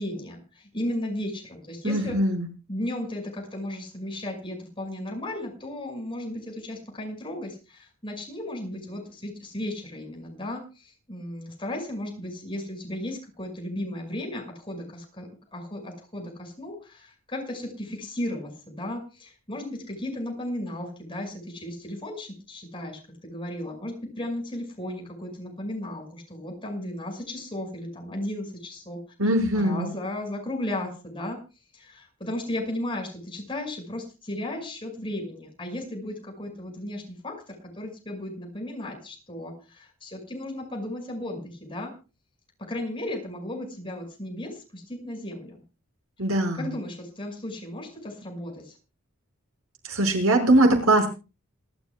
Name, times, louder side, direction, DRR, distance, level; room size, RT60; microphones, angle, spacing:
voice 1, 0.0-2.2 2.7-29.0 29.5-31.4 31.7-41.9 42.7-45.6 46.6-48.8, left 1 dB, 25° left, 1 dB, 6.0 m, -35 dB
voice 2, 1.8-2.5 29.2-29.9 46.2-46.7 49.9-51.1, right 1 dB, 90° right, 3 dB, 5.7 m, -21 dB
27.5 x 12.5 x 2.3 m, 0.32 s
head